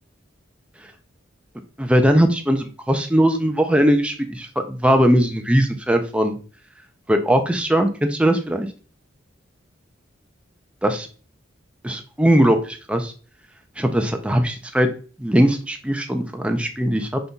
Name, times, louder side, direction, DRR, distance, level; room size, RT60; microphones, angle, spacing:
voice 1, 1.8-6.3 7.1-8.7 10.8-11.1 11.8-13.1 13.8-14.9 15.2-17.2, equal, 5° right, 5 dB, 0.5 m, -19 dB
5.4 x 3.9 x 2.3 m, 0.38 s
head